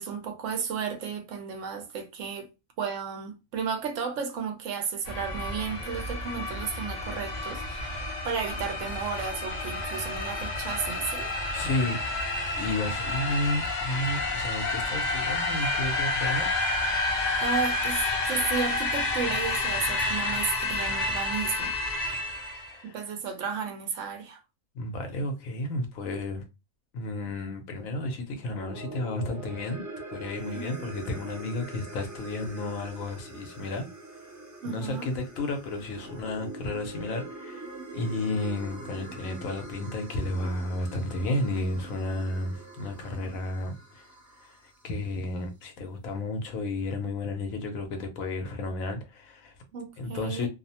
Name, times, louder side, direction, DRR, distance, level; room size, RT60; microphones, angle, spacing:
voice 1, 0.0-2.5 2.8-11.3 17.4-21.8 22.8-24.4 30.5-30.9 34.6-35.1 49.7-50.5, right 6 dB, 70° right, 0.9 m, -33 dB
sound 1, 5.1-22.7, left 2 dB, 50° left, 0.6 m, -30 dB
voice 2, 11.5-12.2 12.5-16.6 22.2-23.0 24.7-26.4 26.9-29.8 30.1-33.9 34.6-37.7 37.9-44.1 44.4-44.5 44.8-49.5 50.0-50.5, left 2 dB, 85° left, 1.1 m, -32 dB
sound 2, 28.4-44.8, right 2 dB, 25° right, 0.4 m, -43 dB
2.7 x 2.0 x 2.7 m
omnidirectional pair, 1.4 m